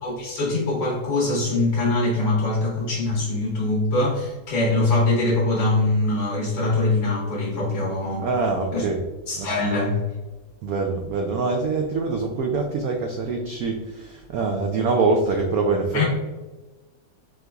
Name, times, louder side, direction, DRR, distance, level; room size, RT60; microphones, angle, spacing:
voice 1, 0.0-8.3 8.7-8.8 9.3-10.0 15.9-16.0, left 2 dB, 50° left, -4 dB, 1.4 m, -23 dB
voice 2, 8.2-9.0 9.4-9.5 10.6-16.0, right 3 dB, 80° right, 3 dB, 0.8 m, -24 dB
4.8 x 3.8 x 2.3 m, 1.2 s
omnidirectional pair, 2.1 m